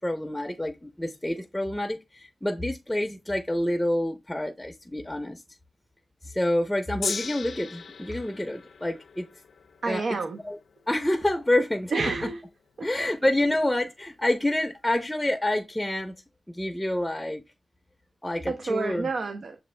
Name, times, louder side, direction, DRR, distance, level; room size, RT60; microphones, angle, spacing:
voice 1, 0.0-5.4 6.2-9.3 9.9-10.0 10.5-10.6 10.9-11.9 12.8-16.1 16.5-17.4 18.2-19.1, left 1 dB, 10° left, 0.5 m, -27 dB
Gong, 7.0-13.4 14.2-14.3, left 5 dB, 80° left, 0.4 m, -39 dB
voice 2, 9.8-10.4 11.9-12.4 12.8-12.9 18.5-19.6, right 3 dB, 70° right, 0.5 m, -29 dB
6.8 x 2.4 x 3.2 m
cardioid pair, 75°, 0 cm